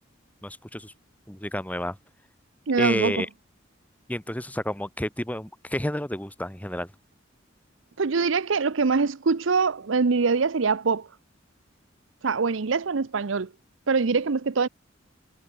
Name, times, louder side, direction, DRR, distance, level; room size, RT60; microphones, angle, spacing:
voice 1, 0.4-0.9 1.3-2.0 2.8-3.3 4.1-6.9, left 1 dB, 10° left, 2.7 m, -30 dB
voice 2, 2.7-3.2 8.0-11.1 12.2-13.5 13.9-14.7, right 4 dB, 75° right, 0.7 m, -23 dB
head